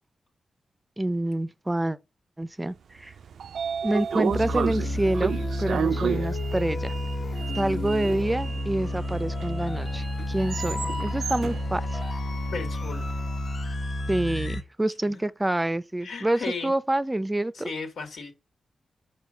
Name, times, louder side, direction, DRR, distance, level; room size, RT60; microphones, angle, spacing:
voice 1, 1.0-2.0 2.4-3.1 3.8-6.9 7.5-12.0 14.1-17.7, right 1 dB, 15° right, 0.5 m, -27 dB
Sliding door, 3.0-13.1, right 7 dB, 80° right, 0.3 m, -33 dB
sound 1, 4.3-14.6, left 1 dB, 50° left, 1.1 m, -30 dB
voice 2, 12.5-13.1 15.0-15.2 16.0-16.7 17.5-18.3, left 4 dB, 90° left, 2.1 m, -35 dB
5.5 x 4.8 x 6.4 m
wide cardioid pair, 115°, 0 cm